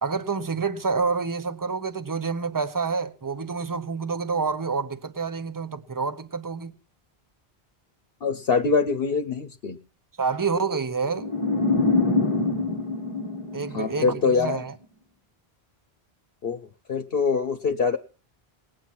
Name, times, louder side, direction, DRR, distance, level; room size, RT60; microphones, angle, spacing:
voice 1, 0.0-6.7 10.2-11.3 13.5-14.7, right 5 dB, 20° right, 0.8 m, -28 dB
voice 2, 8.2-9.8 13.7-14.6 16.4-18.0, left 5 dB, 65° left, 1.1 m, -24 dB
sound 1, 11.2-14.3, left 3 dB, 35° left, 1.0 m, -25 dB
19.5 x 8.9 x 6.0 m
omnidirectional pair, 1.1 m